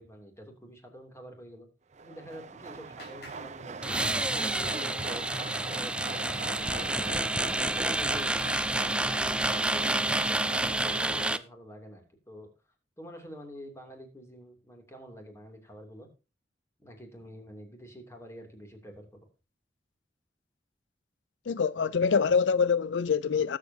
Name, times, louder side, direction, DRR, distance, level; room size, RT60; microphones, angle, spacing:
voice 1, 0.0-1.7 2.0-8.3 8.7-12.5 13.0-16.1 16.8-19.1, equal, 15° left, 2.8 m, -47 dB
Clapping, 1.9-4.5, left 2 dB, 60° left, 5.0 m, -57 dB
sound 1, 1.9-11.3, right 4 dB, 40° right, 0.7 m, -41 dB
sound 2, 3.8-11.4, right 2 dB, 5° right, 0.5 m, -29 dB
voice 2, 21.5-23.6, left 6 dB, 85° left, 0.5 m, -25 dB
19.5 x 7.5 x 2.8 m
head